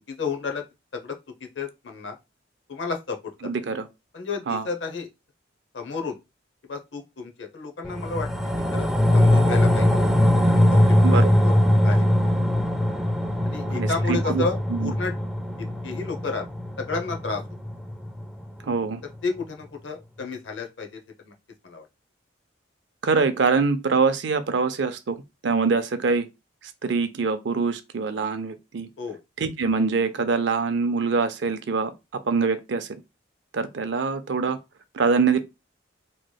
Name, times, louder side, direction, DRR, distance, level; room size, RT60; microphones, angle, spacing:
voice 1, 0.2-0.6 0.9-1.2 1.6-2.2 2.7-3.2 3.4-3.5 4.1-5.1 5.7-6.2 6.7-8.3 8.7-8.9 9.1-9.9 10.5-11.5 11.8-12.1 13.5-15.1 15.8-16.4 16.8-17.4 19.2-21.0 21.2-21.3 21.6-21.8 29.0-29.2, left 4 dB, 70° left, 0.7 m, -31 dB
voice 2, 3.4-3.9 4.5-4.7 11.0-11.3 13.7-14.4 14.7-14.9 18.6-19.0 23.0-26.3 26.8-28.9 29.4-31.9 32.2-33.0 33.5-34.6 34.9-35.4, right 4 dB, 65° right, 0.5 m, -24 dB
sound 1, 7.8-18.4 18.8-18.9, left 1 dB, ahead, 0.4 m, -21 dB
3.2 x 2.9 x 2.2 m
head